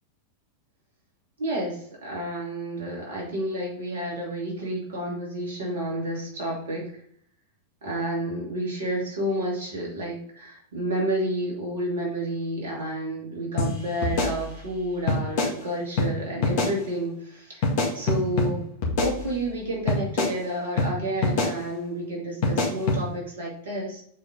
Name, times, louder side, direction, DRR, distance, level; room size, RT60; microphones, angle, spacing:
voice 1, 1.4-7.0 7.8-17.7 17.9-18.6 19.0-24.0, right 1 dB, 60° right, -2 dB, 2.9 m, -30 dB
sound 1, 13.6-13.7 14.0-14.8 15.1-15.5 16.0-16.1 16.4-16.7 17.6-18.5 18.8-19.6 19.9-20.3 20.8-20.9 21.2-21.5 22.4-23.0, left 3 dB, 50° left, 2.0 m, -24 dB
7.2 x 4.6 x 3.8 m, 0.64 s
figure-of-eight pair, 90°, 0 cm